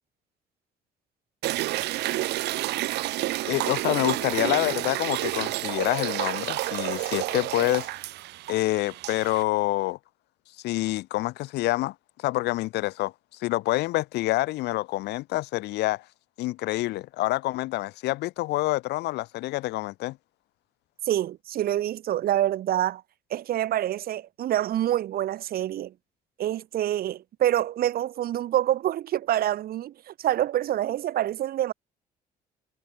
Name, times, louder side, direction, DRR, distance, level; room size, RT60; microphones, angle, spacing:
sound 1, 1.4-9.4, right 17 dB, 80° right, 2.3 m, -30 dB
voice 1, 3.4-7.9 8.5-10.0 10.6-13.1 13.4-16.0 16.4-20.2, left 18 dB, 80° left, 1.5 m, -27 dB
voice 2, 21.1-23.0 23.3-25.9 26.4-31.7, right 12 dB, 65° right, 1.9 m, -26 dB
cardioid pair, 110°, 17 cm